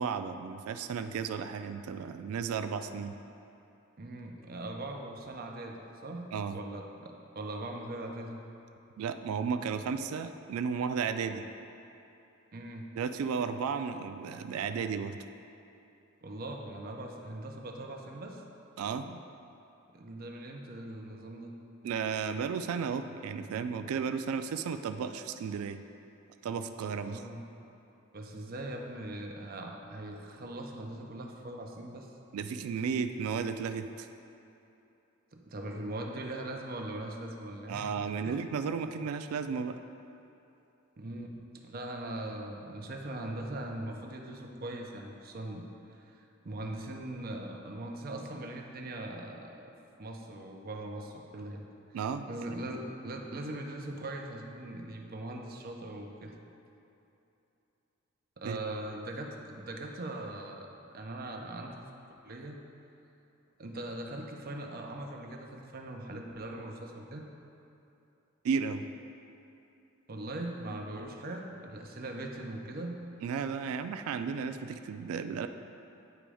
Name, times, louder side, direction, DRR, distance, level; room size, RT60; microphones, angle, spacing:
voice 1, 0.0-3.1 6.3-6.6 9.0-11.4 13.0-15.2 18.8-19.2 21.8-25.8 26.4-27.2 32.3-34.1 37.7-39.8 51.9-52.3 58.4-58.6 68.4-68.8 73.2-75.5, right 6 dB, 90° right, 10 dB, 0.3 m, -34 dB
voice 2, 4.0-8.4 12.5-12.9 16.2-18.4 19.9-21.5 27.0-27.5 28.1-32.1 35.3-37.9 38.2-38.4 41.0-49.7 50.0-51.6 52.3-56.3 58.4-61.8 62.2-62.6 63.6-67.2 70.1-73.0, right 1 dB, 45° right, 2 dB, 0.6 m, -40 dB
8.9 x 3.0 x 4.8 m, 2.9 s
head